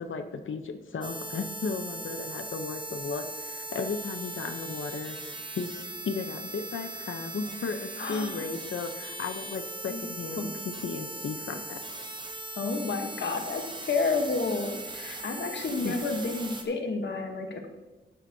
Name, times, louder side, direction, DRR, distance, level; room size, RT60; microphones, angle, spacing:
voice 1, 0.0-5.2 5.5-5.7 6.0-11.8 15.8-16.0, left 4 dB, 85° left, 7 dB, 0.7 m, -35 dB
sound 1, 1.0-16.6, right 2 dB, 25° right, 0.8 m, -39 dB
voice 2, 8.0-8.4 9.9-10.0 10.4-10.5 12.6-17.7, left 3 dB, 65° left, 4 dB, 1.1 m, -30 dB
12.5 x 8.9 x 2.7 m, 1.2 s
wide cardioid pair, 150°, 20 cm